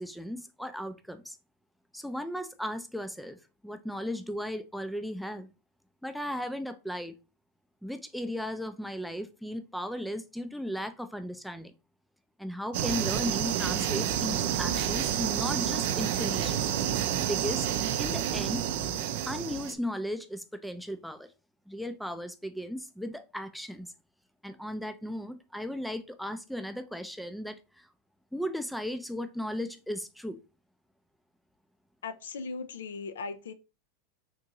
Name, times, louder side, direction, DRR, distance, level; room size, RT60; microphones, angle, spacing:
voice 1, 0.0-1.4 1.9-3.4 3.6-5.5 6.0-7.1 7.8-11.7 12.4-16.6 17.3-17.7 18.0-18.6 19.2-21.3 21.7-23.9 24.4-27.9 28.3-30.4, equal, ahead, 0.4 m, -36 dB
sound 1, 12.7-19.7, right 10 dB, 65° right, 0.4 m, -29 dB
voice 2, 32.0-33.5, left 4 dB, 85° left, 0.4 m, -38 dB
3.7 x 2.6 x 2.9 m
hypercardioid pair, 110°, 0 cm